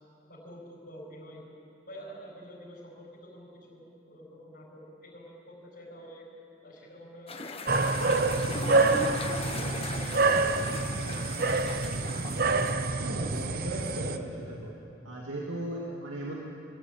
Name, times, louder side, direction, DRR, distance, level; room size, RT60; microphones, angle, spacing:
voice 1, 0.3-1.4 1.8-6.2 6.6-7.4 8.5-10.5 11.0-11.2, equal, 55° left, -8 dB, 5.5 m, -48 dB
sound 1, 7.3-12.7, left 3 dB, 30° left, 1.2 m, -38 dB
sound 2, 7.7-14.2, right 3 dB, 50° right, 0.9 m, -27 dB
voice 2, 13.0-14.8 15.0-16.3, right 1 dB, 85° right, -3 dB, 2.6 m, -36 dB
23.5 x 15.0 x 9.4 m, 2.7 s
head